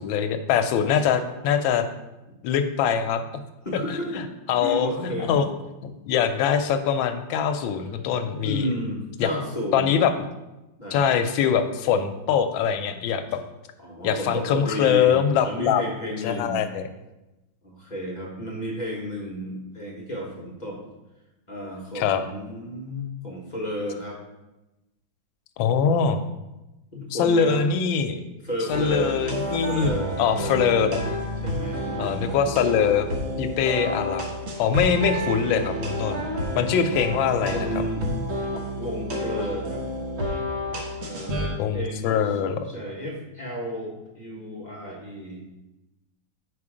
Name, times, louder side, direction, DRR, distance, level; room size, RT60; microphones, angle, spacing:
voice 1, 0.0-1.9 2.4-3.4 3.9-4.2 4.5-5.5 5.8-8.7 9.2-9.3 9.7-10.1 10.9-13.2 14.0-15.8 16.2-16.9 21.9-22.2 25.6-26.2 27.1-28.2 28.7-31.0 32.0-33.1 33.4-34.2 34.6-36.2 36.6-37.7 41.6-42.7, left 7 dB, 85° left, 8 dB, 1.3 m, -23 dB
voice 2, 3.6-4.1 4.6-5.4 8.4-10.0 10.8-11.0 13.8-15.2 15.4-16.7 17.6-20.8 21.5-24.2 26.9-27.6 28.4-29.2 29.7-30.7 31.4-32.5 37.5-38.1 38.8-39.9 41.0-42.4 42.7-45.4, equal, 30° left, -2 dB, 0.9 m, -32 dB
sound 1, 28.7-41.5, equal, 45° right, 1.0 m, -30 dB
5.2 x 4.8 x 4.9 m, 1.0 s
omnidirectional pair, 2.1 m